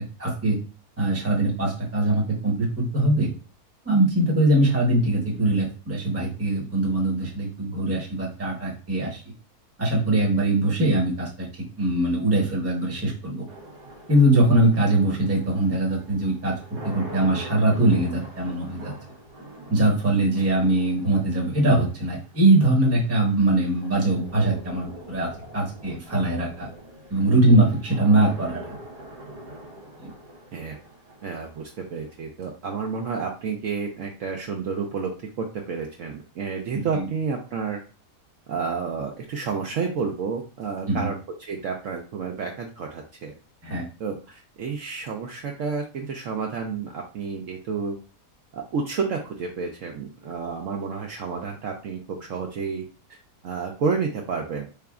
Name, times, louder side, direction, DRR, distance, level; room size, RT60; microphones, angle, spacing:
voice 1, 0.2-0.6 1.0-3.3 3.8-9.2 9.8-11.5 11.8-13.5 14.1-16.5 16.8-18.9 19.7-26.7 27.1-28.8 30.0-30.1 36.9-37.0 40.9-41.1 43.6-43.8, right 1 dB, 10° right, -2 dB, 0.8 m, -22 dB
sound 1, 13.5-32.5, right 1 dB, 90° right, 1.5 m, -44 dB
voice 2, 31.2-37.8 38.5-43.3 44.0-48.0 48.5-53.2 53.4-54.7, right 5 dB, 65° right, 1 dB, 0.8 m, -30 dB
3.8 x 3.4 x 2.3 m, 0.35 s
omnidirectional pair, 1.7 m